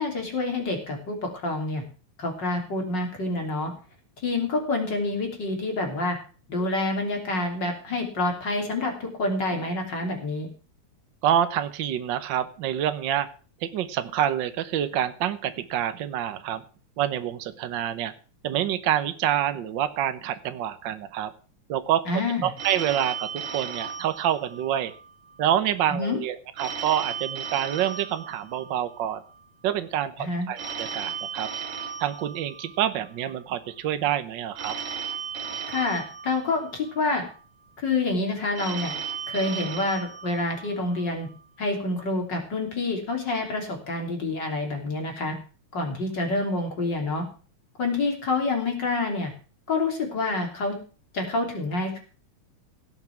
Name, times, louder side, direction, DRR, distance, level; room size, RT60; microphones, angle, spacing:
voice 1, 0.0-1.8 2.2-3.7 4.2-6.2 6.5-10.5 22.1-22.5 25.9-26.2 30.2-30.5 35.7-37.2 37.8-38.9 39.3-41.3 41.6-45.4 45.7-47.2 47.8-49.3 49.7-50.8 51.1-52.0, left 2 dB, 35° left, 3 dB, 3.6 m, -27 dB
voice 2, 11.2-13.3 13.6-16.6 17.0-18.1 18.4-21.3 21.7-24.9 25.4-29.2 29.6-31.5 32.0-34.7, right 10 dB, 85° right, 11 dB, 1.0 m, -27 dB
Telephone, 22.6-25.1 26.6-29.1 30.6-33.1 34.6-37.0 38.6-41.0, right 7 dB, 70° right, 3.3 m, -35 dB
16.5 x 7.2 x 5.9 m, 0.38 s
omnidirectional pair, 3.3 m